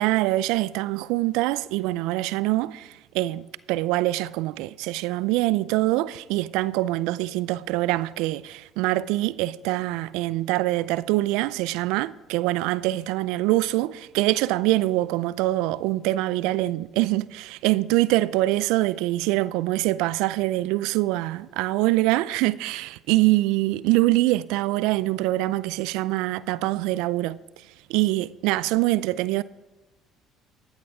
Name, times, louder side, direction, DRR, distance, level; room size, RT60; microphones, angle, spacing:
voice 1, 0.0-27.4 27.9-29.4, right 18 dB, 75° right, 0.4 m, -24 dB
15.0 x 9.5 x 4.8 m
hypercardioid pair, 60°, 0 cm